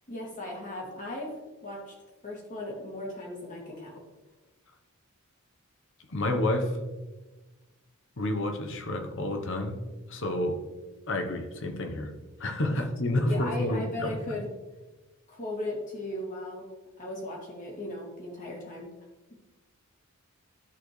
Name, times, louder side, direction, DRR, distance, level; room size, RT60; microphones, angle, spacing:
voice 1, 0.1-1.3 1.6-1.9 2.2-3.9 13.3-14.4 15.3-16.6 17.0-18.9, left 1 dB, 40° left, -2 dB, 2.2 m, -37 dB
voice 2, 6.1-6.8 8.2-9.8 10.1-10.6 11.1-12.1 12.4-14.4, left 1 dB, 60° left, 4 dB, 1.0 m, -29 dB
13.0 x 4.3 x 3.2 m, 1.2 s
head